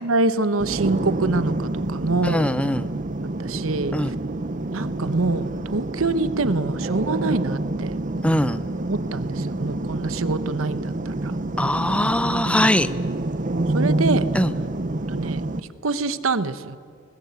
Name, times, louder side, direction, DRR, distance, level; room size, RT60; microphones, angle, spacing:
voice 1, 0.0-2.5 3.4-3.9 4.7-7.9 8.9-11.3 13.5-14.3 15.1-15.4 15.8-16.8, right 3 dB, 85° right, 13 dB, 1.0 m, -25 dB
sound 1, 0.6-15.6, right 2 dB, 40° right, 0.8 m, -27 dB
voice 2, 2.2-2.9 3.9-4.1 8.2-8.6 11.6-12.9 14.3-14.5, left 1 dB, 5° left, 13 dB, 0.6 m, -21 dB
21.5 x 20.0 x 8.2 m, 2.4 s
head